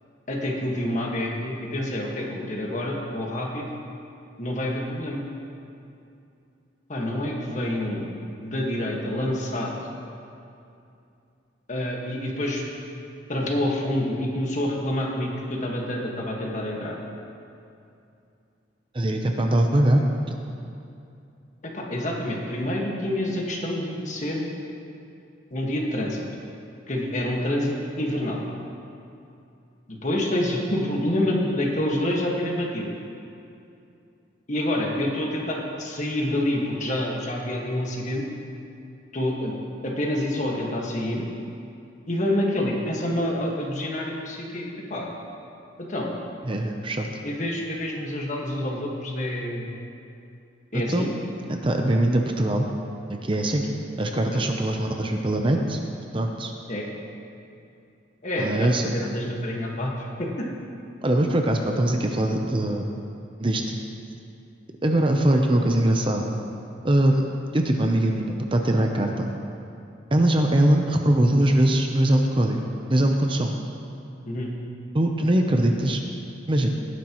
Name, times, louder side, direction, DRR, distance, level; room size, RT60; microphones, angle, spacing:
voice 1, 0.3-3.6 4.4-5.3 6.9-8.1 8.4-9.7 11.7-12.6 13.3-17.0 21.6-24.5 25.5-26.2 26.9-28.4 30.0-32.9 34.5-38.2 39.1-39.5 39.8-41.3 42.1-45.1 45.9-46.1 47.2-49.7 50.7-51.1 54.3-54.4 56.7-56.9 58.2-59.9 60.2-60.5 74.3-74.5, left 1 dB, 40° left, -2 dB, 1.6 m, -27 dB
voice 2, 18.9-20.0 20.3-20.4 46.5-47.1 50.7-51.1 51.6-52.7 53.1-53.7 54.0-55.8 56.1-56.5 58.4-58.9 61.0-62.9 63.4-63.8 64.8-66.4 66.8-67.2 67.5-69.3 70.1-72.6 72.9-73.5 74.9-76.0 76.5-76.7, right 1 dB, 30° right, 3 dB, 0.7 m, -22 dB
18.0 x 9.7 x 3.1 m, 2.6 s
head